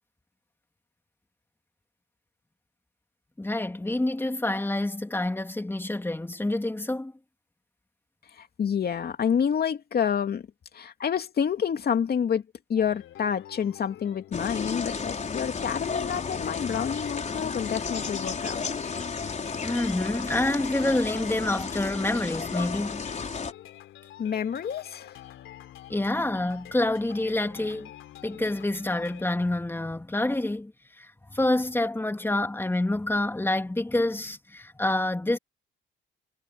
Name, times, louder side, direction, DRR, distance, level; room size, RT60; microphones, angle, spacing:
voice 1, 3.4-7.1 19.6-23.0 25.9-27.9 28.2-30.7 31.0-35.4, left 1 dB, 10° left, 2.6 m, -27 dB
voice 2, 8.3-10.5 10.7-18.6 24.2-25.2, left 7 dB, 55° left, 2.5 m, -28 dB
sound 1, 12.8-29.2, left 13 dB, 85° left, 3.4 m, -47 dB
sound 2, 14.3-23.5, left 5 dB, 35° left, 4.8 m, -33 dB
cardioid pair, 90°, 20 cm